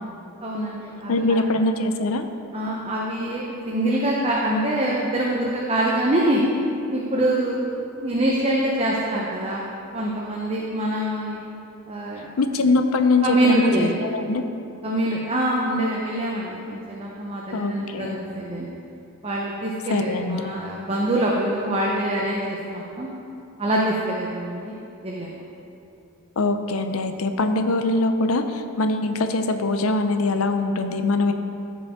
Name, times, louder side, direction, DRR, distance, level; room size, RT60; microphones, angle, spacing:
voice 1, 0.4-1.2 2.5-6.4 6.9-9.6 9.9-11.4 11.9-12.3 13.2-13.9 14.8-18.7 19.2-23.1 23.6-24.8 25.0-25.4, right 1 dB, 30° right, -3 dB, 0.8 m, -25 dB
voice 2, 1.1-2.3 12.4-14.5 17.5-18.2 19.9-20.5 26.4-31.3, left 2 dB, 75° left, 7 dB, 0.6 m, -22 dB
14.5 x 5.1 x 3.7 m, 2.7 s
head